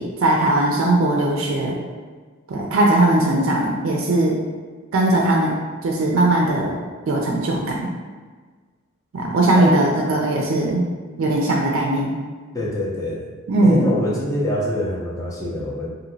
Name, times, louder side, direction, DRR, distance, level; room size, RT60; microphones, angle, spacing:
voice 1, 0.0-1.8 2.5-4.3 4.9-5.6 5.8-6.7 7.1-7.9 9.1-10.9 11.2-12.1 13.5-14.0, right 2 dB, 70° right, -1 dB, 0.4 m, -19 dB
voice 2, 12.5-13.3 13.6-15.9, left 1 dB, 15° left, -4 dB, 0.4 m, -25 dB
2.9 x 2.6 x 2.6 m, 1.4 s
head